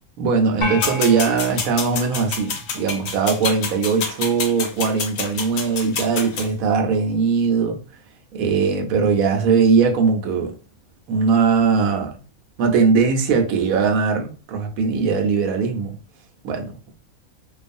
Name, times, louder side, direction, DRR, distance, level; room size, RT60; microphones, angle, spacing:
voice 1, 0.2-7.8 8.3-10.5 11.1-12.1 12.6-15.9 16.4-16.9, right 5 dB, 80° right, 1.0 m, -20 dB
sound 1, 0.6-3.1, left 1 dB, 45° left, 0.7 m, -33 dB
sound 2, 0.8-6.5, left 6 dB, 90° left, 1.1 m, -28 dB
2.5 x 2.4 x 2.5 m
omnidirectional pair, 1.5 m